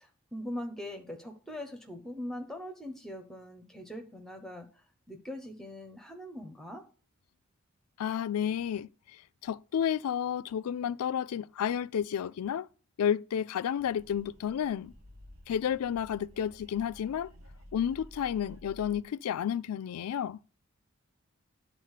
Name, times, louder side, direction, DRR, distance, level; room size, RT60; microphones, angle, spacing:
voice 1, 0.0-6.8, left 1 dB, ahead, 1.0 m, -42 dB
voice 2, 8.0-8.9 9.4-12.7 13.0-14.9 15.5-17.3 17.7-20.4, left 9 dB, 85° left, 0.3 m, -31 dB
sound 1, 13.8-19.0, equal, 80° right, 1.6 m, -53 dB
10.0 x 4.0 x 6.5 m
head